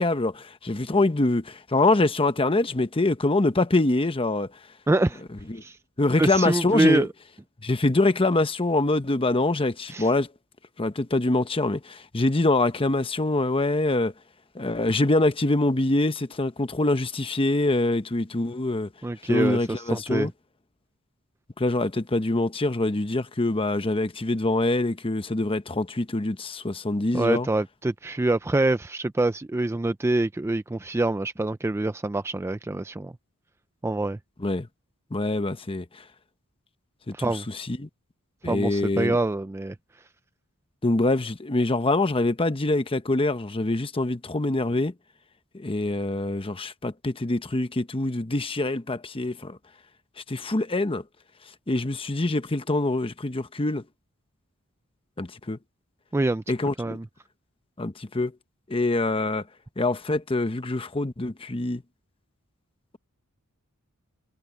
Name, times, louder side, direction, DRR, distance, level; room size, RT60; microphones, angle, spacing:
voice 1, 0.0-4.5 5.5-5.6 6.0-7.1 7.6-10.3 10.8-14.1 14.5-18.9 19.2-20.3 21.6-27.5 34.4-34.7 35.1-36.0 37.1-37.9 38.4-39.2 40.8-44.9 45.5-49.6 50.3-51.0 51.7-53.8 55.2-55.6 56.5-57.0 57.8-58.3 58.7-59.4 59.8-61.8, left 2 dB, 25° left, 0.9 m, -24 dB
voice 2, 4.9-5.2 5.6-5.8 6.2-7.1 9.9-10.1 19.0-20.3 27.1-33.1 33.8-34.2 37.1-37.4 38.4-39.7 56.1-56.4 56.8-57.0, right 2 dB, 10° right, 0.3 m, -25 dB
head